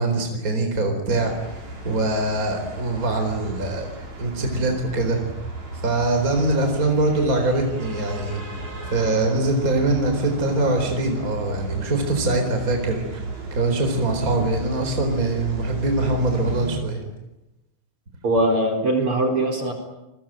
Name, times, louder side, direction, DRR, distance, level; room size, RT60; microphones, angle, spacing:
voice 1, 0.0-3.9 4.2-5.3 5.8-8.4 8.9-13.0 13.5-17.0, right 2 dB, 25° right, 4 dB, 4.5 m, -23 dB
sound 1, 1.1-16.8, right 1 dB, 65° right, 6.7 m, -34 dB
voice 2, 18.2-19.7, right 1 dB, 45° right, 3 dB, 5.2 m, -21 dB
30.0 x 22.0 x 9.0 m, 0.93 s
omnidirectional pair, 3.5 m